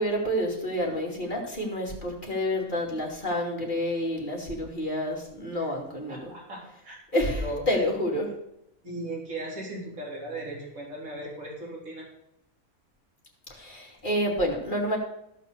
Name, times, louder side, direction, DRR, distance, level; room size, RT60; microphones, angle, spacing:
voice 1, 0.0-6.2 7.1-7.4 7.7-8.3 13.5-15.0, equal, 35° left, -2 dB, 3.0 m, -28 dB
voice 2, 6.1-7.0 7.3-7.8 8.8-12.1, right 1 dB, 70° right, -3 dB, 3.8 m, -37 dB
15.0 x 5.8 x 6.8 m, 0.80 s
omnidirectional pair, 1.5 m